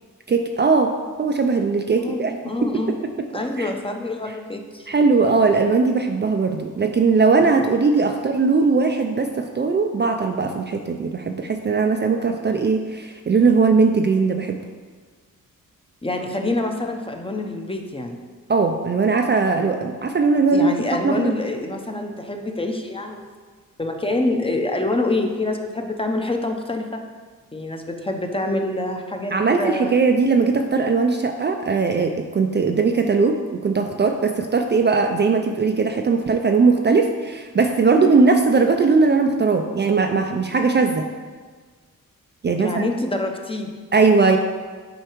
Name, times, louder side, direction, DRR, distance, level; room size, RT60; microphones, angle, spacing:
voice 1, 0.3-2.3 2.6-3.0 3.6-3.7 4.9-14.6 18.5-21.3 29.3-41.0 42.4-42.8 43.9-44.4, right 4 dB, 30° right, 4 dB, 0.4 m, -19 dB
voice 2, 2.0-3.0 3.3-4.9 16.0-18.2 20.5-23.4 23.8-27.0 27.5-29.9 42.6-43.9, left 2 dB, 15° left, 4 dB, 0.7 m, -26 dB
7.8 x 4.6 x 3.1 m, 1.5 s
cardioid pair, 65°, 34 cm